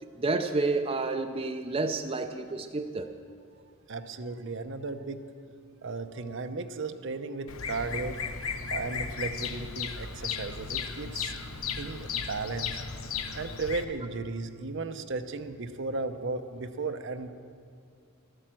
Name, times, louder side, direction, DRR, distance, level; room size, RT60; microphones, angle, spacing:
voice 1, 0.0-3.1, right 3 dB, 25° right, 6 dB, 0.5 m, -30 dB
voice 2, 3.9-5.2 5.8-8.3 8.7-11.4 11.7-12.8 13.3-17.3, right 3 dB, 60° right, 9 dB, 0.7 m, -35 dB
Bird vocalization bird call bird song, 7.5-13.8, left 6 dB, 90° left, 0.9 m, -35 dB
13.0 x 11.5 x 7.5 m, 2.2 s
head